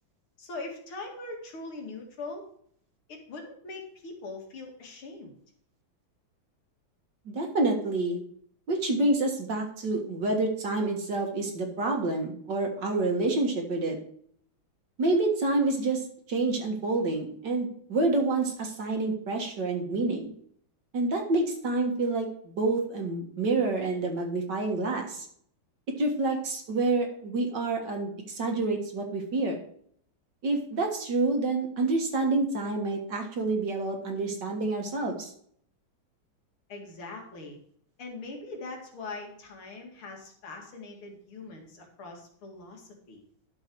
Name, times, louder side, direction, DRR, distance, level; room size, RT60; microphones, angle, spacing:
voice 1, 0.4-2.5 3.1-5.4 36.7-37.6 38.0-43.2, left 3 dB, 90° left, 1 dB, 3.0 m, -41 dB
voice 2, 7.3-8.2 8.7-14.0 15.0-16.0 16.3-20.3 20.9-25.3 26.0-29.6 30.4-35.3, right 2 dB, 60° right, 3 dB, 2.1 m, -28 dB
11.5 x 6.6 x 4.6 m, 0.63 s
omnidirectional pair, 2.3 m